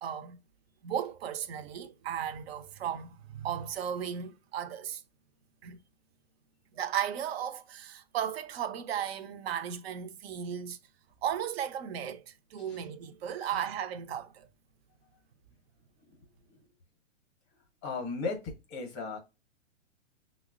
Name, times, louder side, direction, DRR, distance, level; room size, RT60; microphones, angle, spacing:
voice 1, 0.0-0.4 0.8-5.0 5.6-5.8 6.7-10.8 11.2-14.5, right 9 dB, 55° right, 0.5 m, -35 dB
voice 2, 17.8-19.2, left 4 dB, 25° left, 0.6 m, -36 dB
5.4 x 2.0 x 2.3 m
hypercardioid pair, 150°, 37 cm